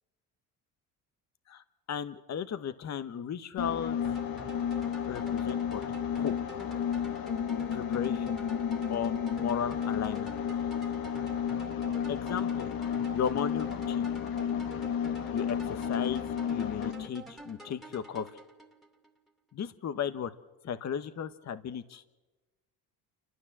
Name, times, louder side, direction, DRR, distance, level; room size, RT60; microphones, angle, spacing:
voice 1, 1.5-4.0 5.1-5.8 6.1-6.3 7.7-8.4 8.9-10.3 12.1-12.7 13.1-14.1 15.3-18.3 19.5-20.3 20.6-22.0, left 8 dB, 45° left, 11 dB, 1.1 m, -35 dB
sound 1, 3.6-17.1, left 8 dB, 60° left, 1.5 m, -32 dB
sound 2, 4.0-19.1, right 2 dB, ahead, 2.5 m, -48 dB
29.0 x 12.5 x 7.3 m, 1.2 s
supercardioid pair, 75°, 39 cm